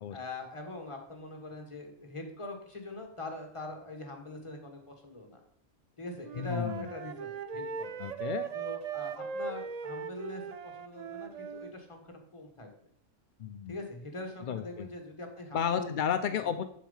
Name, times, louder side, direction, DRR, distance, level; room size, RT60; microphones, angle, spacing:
voice 1, 0.1-5.4 6.0-7.9 8.5-12.7 13.7-15.9 16.2-16.6, left 2 dB, 25° left, 3 dB, 1.6 m, -42 dB
Wind instrument woodwind instrument, 6.2-11.7, right 6 dB, 70° right, 0.3 m, -39 dB
voice 2, 6.3-6.9 8.0-8.5 13.4-13.7 14.5-14.9 15.5-16.6, left 8 dB, 65° left, 9 dB, 0.4 m, -32 dB
7.3 x 7.2 x 5.4 m, 0.66 s
omnidirectional pair, 1.4 m